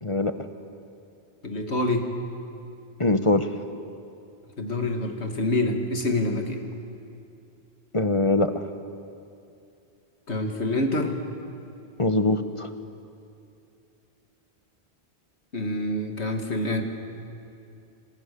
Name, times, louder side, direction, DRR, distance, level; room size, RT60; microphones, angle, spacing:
voice 1, 0.0-0.3 3.0-3.5 7.9-8.6 12.0-12.7, left 2 dB, 30° left, 8 dB, 1.1 m, -22 dB
voice 2, 1.4-2.1 4.6-6.6 10.3-11.2 15.5-16.8, left 2 dB, 85° left, 3 dB, 2.5 m, -26 dB
28.5 x 26.5 x 6.9 m, 2.6 s
omnidirectional pair, 1.1 m